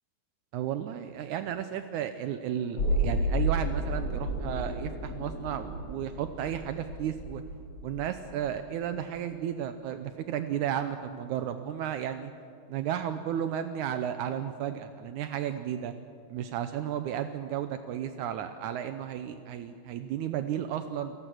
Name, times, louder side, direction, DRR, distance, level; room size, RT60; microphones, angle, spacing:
voice 1, 0.5-7.4 7.8-12.3 12.7-15.9 16.3-21.2, right 10 dB, 75° right, 9 dB, 2.1 m, -33 dB
sound 1, 2.8-8.7 9.1-9.2, right 1 dB, 40° left, 5.2 m, -32 dB
30.0 x 17.0 x 6.3 m, 2.6 s
omnidirectional pair, 3.6 m